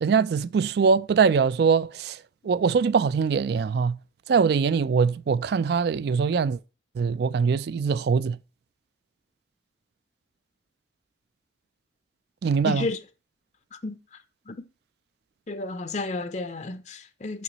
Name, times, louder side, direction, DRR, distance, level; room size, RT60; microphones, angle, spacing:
voice 1, 0.0-2.2 2.4-4.0 4.3-6.6 7.0-8.4 12.4-12.9, right 5 dB, 55° right, 0.3 m, -22 dB
voice 2, 12.6-13.0 13.7-14.0 14.5-14.7 15.5-17.4, left 3 dB, 40° left, 0.5 m, -31 dB
6.8 x 6.1 x 2.9 m
head